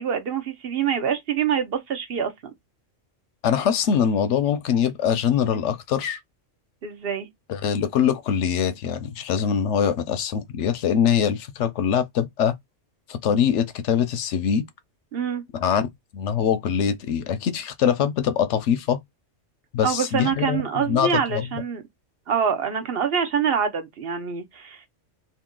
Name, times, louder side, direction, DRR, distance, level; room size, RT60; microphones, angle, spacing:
voice 1, 0.0-2.3 6.8-7.3 15.1-15.4 19.8-21.8 22.3-24.9, right 7 dB, 55° right, 0.9 m, -25 dB
voice 2, 3.4-6.2 7.5-12.5 13.1-14.7 15.5-15.9 16.1-19.0 19.7-21.6, left 8 dB, 75° left, 0.9 m, -23 dB
2.9 x 2.6 x 3.6 m
omnidirectional pair, 1.3 m